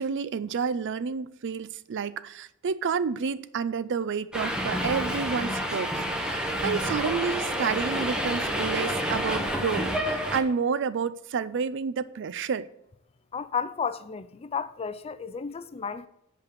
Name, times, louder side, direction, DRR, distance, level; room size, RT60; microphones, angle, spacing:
voice 1, 0.0-12.7, right 6 dB, 60° right, 0.4 m, -30 dB
Subway metro underground, 4.3-10.4, equal, 5° right, 0.9 m, -29 dB
voice 2, 13.3-16.1, left 6 dB, 30° left, 0.4 m, -33 dB
8.2 x 5.3 x 6.6 m
head